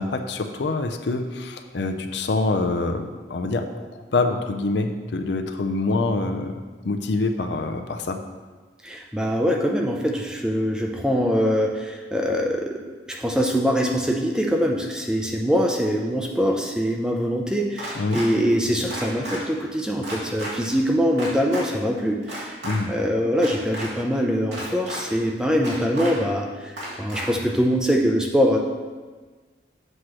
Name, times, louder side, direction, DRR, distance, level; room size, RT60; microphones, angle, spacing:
voice 1, 0.0-3.7 4.1-6.5 6.8-8.2 18.0-18.2 22.6-22.9, left 3 dB, 75° left, 6 dB, 0.5 m, -25 dB
voice 2, 8.8-12.8 13.1-22.6 22.9-28.6, equal, 5° right, 0 dB, 0.5 m, -23 dB
sound 1, 17.8-18.3 18.9-19.4 20.0-20.5 21.2-21.6 22.2-22.8 23.4-23.9 24.5-25.0 25.6-26.1 26.8-27.3, right 1 dB, 70° right, 2.3 m, -33 dB
7.9 x 3.0 x 6.2 m, 1.4 s
head